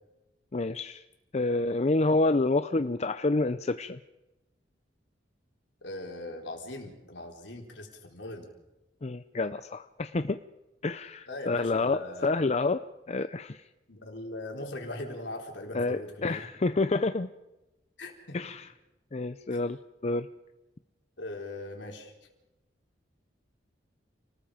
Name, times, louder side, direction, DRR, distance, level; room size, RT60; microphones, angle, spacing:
voice 1, 0.5-1.0 1.3-4.0 9.0-10.4 10.8-13.6 15.7-17.3 18.3-18.7 19.1-20.3, left 2 dB, 35° left, 10 dB, 0.6 m, -28 dB
voice 2, 5.8-8.5 11.3-12.3 13.9-16.5 18.0-18.5 19.5-19.6 21.2-22.1, left 1 dB, 70° left, 1 dB, 4.3 m, -40 dB
29.5 x 19.5 x 5.1 m, 1.0 s
head